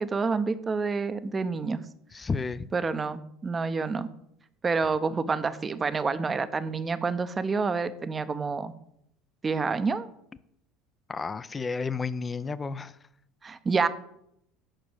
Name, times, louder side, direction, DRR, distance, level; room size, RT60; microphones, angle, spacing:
voice 1, 0.0-1.8 2.7-4.1 4.6-8.7 9.4-10.1 13.4-13.9, right 4 dB, 25° right, 13 dB, 0.8 m, -28 dB
voice 2, 2.1-2.7 11.1-13.0, left 4 dB, 20° left, 15 dB, 0.5 m, -32 dB
8.9 x 6.1 x 7.7 m, 0.75 s
figure-of-eight pair, 70°, 0 cm